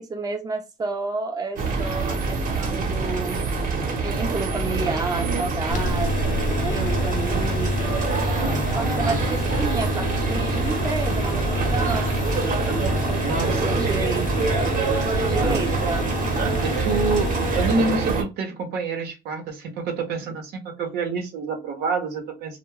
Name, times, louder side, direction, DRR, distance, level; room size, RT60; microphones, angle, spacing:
voice 1, 0.0-3.5 3.9-7.9 8.8-12.1 12.8-14.3 15.1-16.1, right 3 dB, 20° right, 0.6 m, -30 dB
sound 1, 1.6-18.2, right 4 dB, 50° right, 1.0 m, -25 dB
voice 2, 5.1-5.5 8.4-9.2 12.6-13.8 15.4-15.7 16.6-22.6, right 4 dB, 75° right, 0.8 m, -28 dB
sound 2, 5.7-17.7, left 2 dB, 50° left, 0.6 m, -28 dB
2.2 x 2.2 x 3.2 m
cardioid pair, 110°, 17 cm